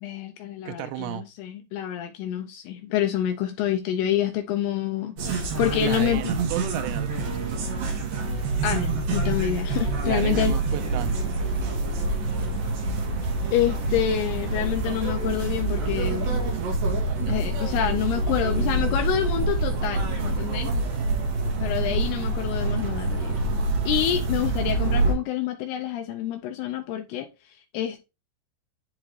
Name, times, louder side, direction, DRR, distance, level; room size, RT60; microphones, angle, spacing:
voice 1, 0.0-6.2 8.6-10.5 13.5-16.4 17.3-20.7 21.6-23.5 23.9-28.0, left 11 dB, 80° left, 2.4 m, -27 dB
voice 2, 0.7-1.2 5.8-7.7 10.0-11.3 20.6-20.9, right 13 dB, 85° right, 2.3 m, -33 dB
sound 1, 5.2-25.1, right 3 dB, 60° right, 3.1 m, -26 dB
10.5 x 3.7 x 3.1 m
omnidirectional pair, 5.1 m